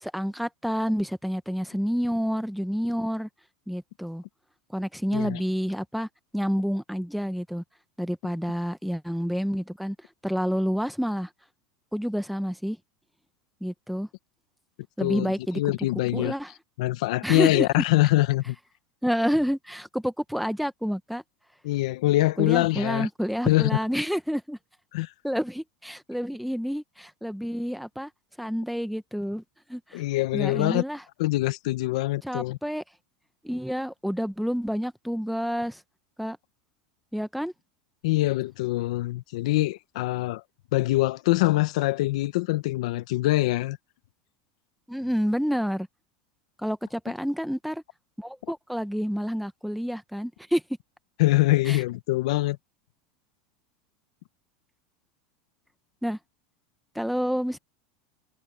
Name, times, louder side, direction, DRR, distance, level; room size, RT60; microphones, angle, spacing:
voice 1, 0.0-3.3 3.7-4.2 4.7-6.1 6.3-7.6 8.0-10.0 10.2-11.3 11.9-12.8 13.6-14.1 15.0-15.6 16.1-16.5 17.2-17.8 19.0-21.2 22.4-24.6 25.2-28.1 28.4-29.4 29.7-30.0 30.3-31.0 32.2-32.8 33.4-35.8 36.2-36.4 37.1-37.5 44.9-45.9 46.6-47.8 48.2-50.6 51.7-51.8 56.0-56.2 56.9-57.6, equal, ahead, 1.1 m, -29 dB
voice 2, 15.0-16.3 16.8-18.5 21.6-23.1 23.4-23.7 24.9-25.1 29.9-30.8 31.2-32.6 38.0-40.4 40.7-43.8 51.2-52.6, left 18 dB, 75° left, 0.9 m, -24 dB
supercardioid pair, 140°, 4 cm